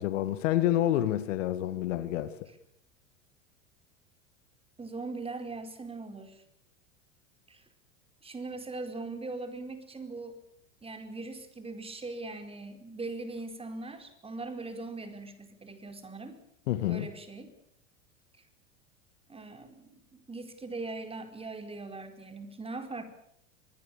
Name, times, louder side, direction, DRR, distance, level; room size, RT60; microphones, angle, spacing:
voice 1, 0.0-2.4 16.7-17.1, left 13 dB, 65° left, 12 dB, 2.0 m, -28 dB
voice 2, 4.8-6.4 7.5-7.6 8.2-10.4 10.8-16.4 16.9-17.5 19.3-23.0, right 3 dB, 15° right, 7 dB, 4.6 m, -40 dB
24.5 x 22.0 x 7.2 m, 0.71 s
hypercardioid pair, 100°, 40 cm